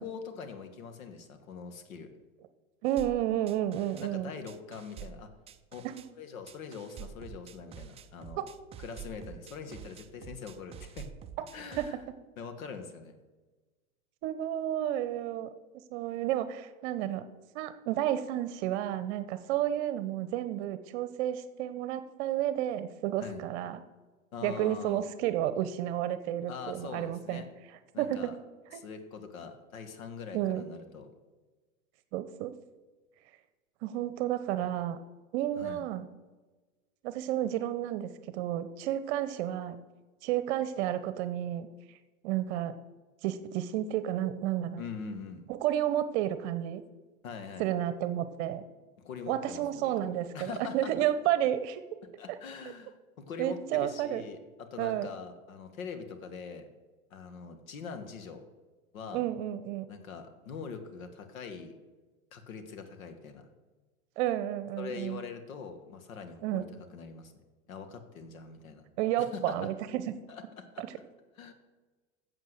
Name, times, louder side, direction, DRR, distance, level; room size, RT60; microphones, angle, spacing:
voice 1, 0.0-2.1 4.0-5.3 5.7-5.8 6.2-8.5 8.8-11.1 11.5-12.0 12.4-13.2 23.2-23.4 24.3-25.1 26.5-27.5 27.9-28.4 28.7-31.1 35.6-35.8 44.8-45.5 47.2-47.7 49.0-51.0 52.2-56.7 57.1-58.4 58.9-59.2 59.9-61.8 62.3-63.5 64.8-66.7 66.9-67.3 67.7-68.8 69.2-69.7 70.3-70.8 71.4-71.5, left 5 dB, 85° left, 8 dB, 1.6 m, -43 dB
voice 2, 2.8-4.3 5.8-6.0 8.4-8.5 11.8-11.9 14.2-15.5 15.9-17.2 17.5-23.8 24.4-27.4 28.0-28.3 28.7-28.8 30.3-30.6 32.1-32.5 33.8-35.0 35.3-36.0 37.0-39.8 40.2-41.7 42.2-42.7 43.2-44.8 45.5-46.8 47.6-48.6 49.3-51.8 53.4-54.2 54.8-55.1 59.1-59.9 64.2-65.2 66.4-66.6 69.0-70.0 70.8-70.9, right 12 dB, 55° right, 12 dB, 0.8 m, -31 dB
sound 1, 2.9-4.1 4.5-6.1 6.5-11.9, right 9 dB, 15° right, 0.3 m, -47 dB
8.0 x 7.4 x 7.7 m, 1.3 s
hypercardioid pair, 115°, 40 cm